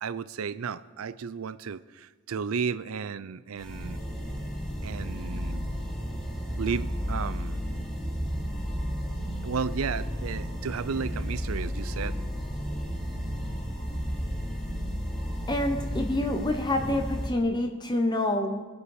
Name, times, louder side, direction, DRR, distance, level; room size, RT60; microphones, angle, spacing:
voice 1, 0.0-4.0 4.8-5.6 6.6-7.6 9.4-12.2, right 6 dB, 85° right, 16 dB, 0.5 m, -33 dB
sound 1, 3.6-17.3, equal, 5° left, 3.2 m, -33 dB
voice 2, 15.5-18.6, left 1 dB, 20° left, 5 dB, 0.9 m, -27 dB
21.5 x 8.2 x 4.8 m, 1.4 s
head